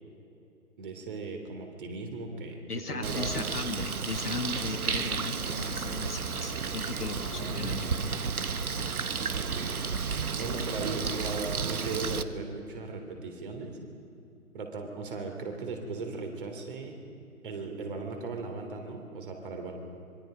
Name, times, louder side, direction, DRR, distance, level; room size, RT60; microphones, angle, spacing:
voice 1, 0.8-3.4 4.3-4.5 7.0-7.6 9.2-9.8 10.3-13.8 14.5-17.0 17.4-19.7, right 3 dB, 35° right, 4 dB, 3.4 m, -38 dB
voice 2, 2.7-7.9, left 3 dB, 85° left, 7 dB, 2.1 m, -37 dB
Bird, 3.0-12.2, right 5 dB, 75° right, 1.2 m, -32 dB
26.0 x 22.5 x 5.1 m, 2.7 s
figure-of-eight pair, 150°, 45 cm